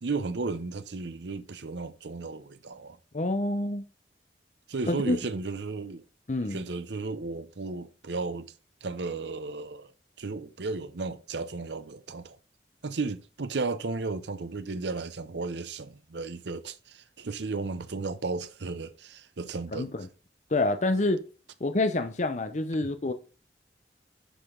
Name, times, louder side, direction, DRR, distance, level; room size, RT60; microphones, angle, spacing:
voice 1, 0.0-3.0 4.7-6.0 6.5-8.5 8.8-9.9 10.2-12.4 12.8-19.9 22.8-22.9, right 3 dB, 85° right, 0.7 m, -34 dB
voice 2, 3.1-3.8 4.9-5.2 6.3-6.6 19.7-20.1 20.5-21.2 21.6-23.1, left 2 dB, 40° left, 0.7 m, -27 dB
10.0 x 5.0 x 3.8 m
head